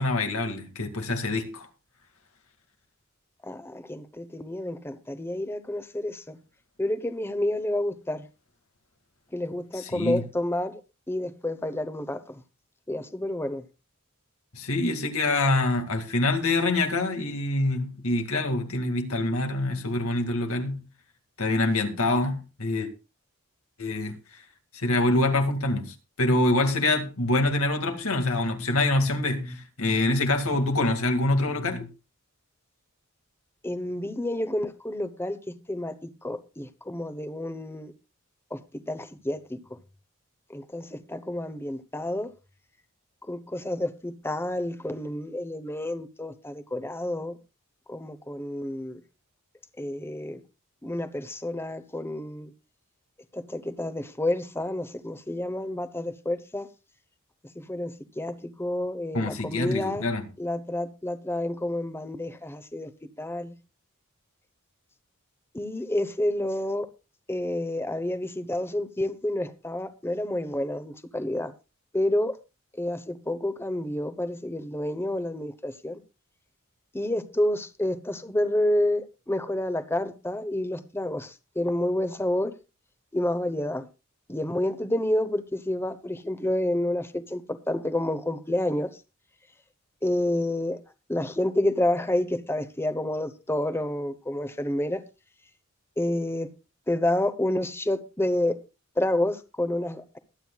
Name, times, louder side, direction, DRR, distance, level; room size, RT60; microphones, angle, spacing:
voice 1, 0.0-1.7 9.7-10.2 14.5-20.8 21.4-22.9 23.8-24.1 24.7-31.9 59.1-60.3, left 2 dB, 80° left, 2.2 m, -25 dB
voice 2, 3.4-6.4 6.8-8.3 9.3-10.8 11.1-12.4 12.9-13.6 33.6-37.9 38.5-39.8 40.5-42.3 43.3-47.4 47.9-49.0 49.8-50.4 50.8-52.5 53.3-56.7 57.5-60.0 60.4-62.9 63.2-63.5 65.5-66.9 67.3-71.5 71.9-72.4 72.8-76.0 76.9-82.5 83.1-83.9 84.3-88.9 90.0-90.8 91.1-95.0 96.0-96.5 96.9-98.6 99.0-100.2, left 1 dB, 10° left, 0.9 m, -29 dB
21.5 x 9.2 x 2.4 m
head